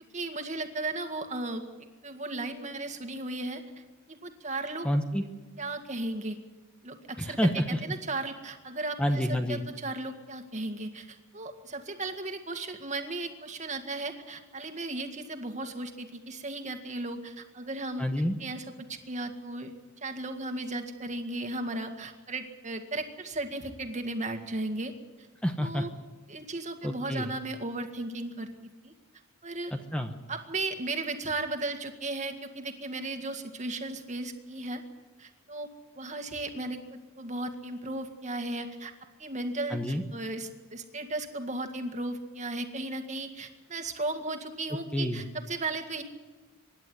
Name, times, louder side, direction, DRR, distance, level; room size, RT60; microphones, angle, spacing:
voice 1, 0.1-1.7 2.0-3.6 4.1-4.9 5.6-6.4 6.8-18.1 18.4-19.7 20.0-24.9 25.6-25.9 26.3-28.9 29.4-29.7 30.3-34.8 35.2-35.7 36.0-38.9 39.2-46.0, right 2 dB, 35° right, 5 dB, 2.0 m, -35 dB
voice 2, 4.8-5.2 7.2-7.8 9.0-9.6 18.0-18.4 25.4-25.9 26.8-27.3 29.7-30.1 39.7-40.0 44.9-45.2, equal, 5° left, 5 dB, 1.0 m, -28 dB
25.5 x 11.0 x 9.8 m, 1.3 s
head